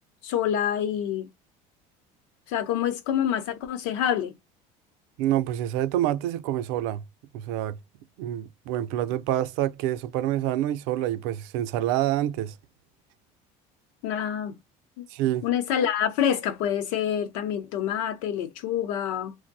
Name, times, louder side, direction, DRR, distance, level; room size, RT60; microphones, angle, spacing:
voice 1, 0.2-1.3 2.5-4.3 14.0-14.6 15.0-15.1 15.4-19.3, left 9 dB, 85° left, 0.8 m, -27 dB
voice 2, 5.2-7.0 7.3-7.8 8.2-12.5 15.1-15.5, right 12 dB, 80° right, 0.5 m, -27 dB
2.6 x 2.1 x 3.9 m
cardioid pair, 180°, 16 cm